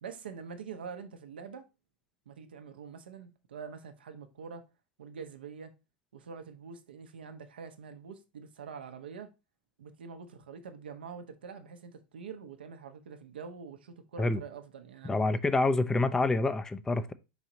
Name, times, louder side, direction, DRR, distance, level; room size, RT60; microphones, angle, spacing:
voice 1, 0.0-1.7 2.3-4.6 5.0-5.7 6.1-9.3 9.8-15.3, right 6 dB, 75° right, 0.8 m, -45 dB
voice 2, 15.0-17.1, left 2 dB, 10° left, 0.4 m, -27 dB
4.8 x 4.0 x 2.7 m
hypercardioid pair, 95°, 5 cm